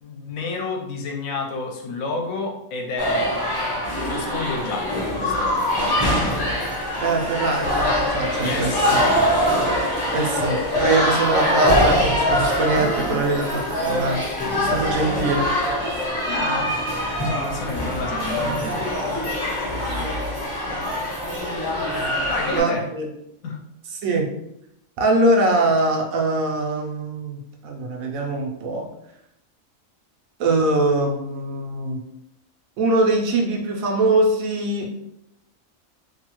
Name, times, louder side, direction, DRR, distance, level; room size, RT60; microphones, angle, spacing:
voice 1, 0.0-3.4 3.7-5.7 8.4-9.1 13.1-13.2 16.3-16.8 17.2-19.0 19.6-20.2 22.3-22.9 23.4-23.6, left 3 dB, 75° left, 1 dB, 1.0 m, -30 dB
sound 1, 3.0-22.6, equal, 20° left, 0.7 m, -23 dB
voice 2, 7.0-9.0 10.1-14.2 14.6-15.5 19.9-20.0 22.6-23.1 24.0-24.3 25.0-28.9 30.4-32.0 32.8-34.9, right 2 dB, 75° right, 1 dB, 1.0 m, -22 dB
2.7 x 2.3 x 2.9 m, 0.80 s
omnidirectional pair, 1.5 m